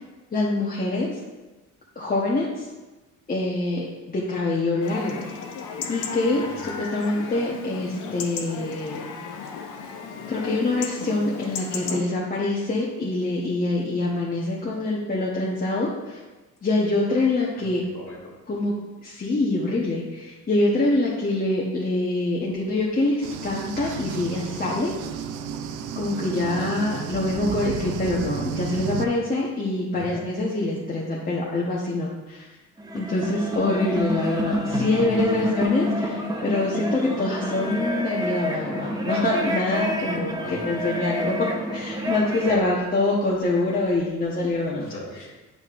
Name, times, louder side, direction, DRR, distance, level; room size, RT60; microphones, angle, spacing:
voice 1, 0.3-1.2 2.0-2.7 3.3-5.2 5.9-9.0 10.3-16.2 16.6-17.8 18.5-18.7 19.0-24.9 25.9-32.5 32.9-44.9, left 2 dB, 30° left, -5 dB, 1.0 m, -25 dB
Chatter / Livestock farm animals working animals / Chirp tweet, 4.8-12.0, left 5 dB, 80° left, 0.8 m, -35 dB
voice 2, 6.2-6.7 17.6-18.3 26.4-26.7 29.9-30.2 34.7-35.5 40.4-40.7 42.4-42.7 44.7-45.3, left 2 dB, 45° left, -2 dB, 1.9 m, -37 dB
sound 1, 23.2-29.1, right 7 dB, 85° right, 0.5 m, -32 dB
sound 2, 32.8-42.6, equal, 15° right, 0.9 m, -28 dB
8.2 x 5.2 x 2.5 m, 1.2 s
cardioid pair, 90°, 30 cm